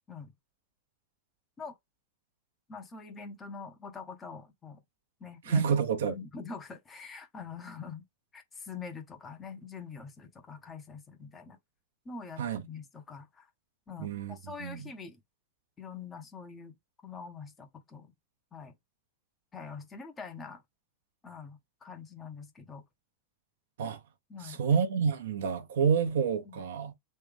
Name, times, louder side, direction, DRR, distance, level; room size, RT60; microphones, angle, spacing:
voice 1, 2.7-4.8 5.2-5.7 6.1-8.0 8.3-11.6 12.0-13.5 13.9-15.2 15.8-16.7 17.0-18.1 18.5-18.7 19.5-20.6 21.2-22.9 24.3-24.6 26.4-26.7, left 5 dB, 20° left, 1.0 m, -44 dB
voice 2, 5.5-6.2 12.4-12.6 14.0-14.9 23.8-24.0 24.4-26.9, right 6 dB, 60° right, 0.8 m, -28 dB
3.3 x 3.2 x 3.4 m
figure-of-eight pair, 90°, 0 cm